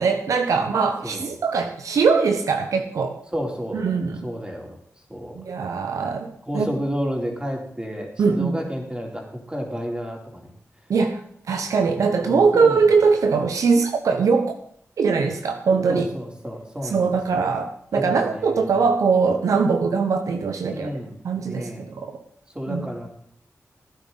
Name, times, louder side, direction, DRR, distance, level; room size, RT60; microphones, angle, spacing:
voice 1, 0.0-3.2 3.7-4.2 5.3-6.7 8.2-8.6 10.9-11.2 11.5-14.5 15.0-16.0 16.8-20.9 21.2-22.2 22.7-22.9, right 5 dB, 90° right, 6 dB, 1.0 m, -21 dB
voice 2, 3.3-3.8 4.2-4.8 5.1-5.4 6.4-10.5 12.2-12.9 15.9-17.5 17.9-18.6 20.7-21.2 21.5-21.8 22.6-23.1, equal, 15° right, 0 dB, 3.5 m, -31 dB
16.0 x 9.8 x 4.1 m, 0.63 s
cardioid pair, 55°, 5 cm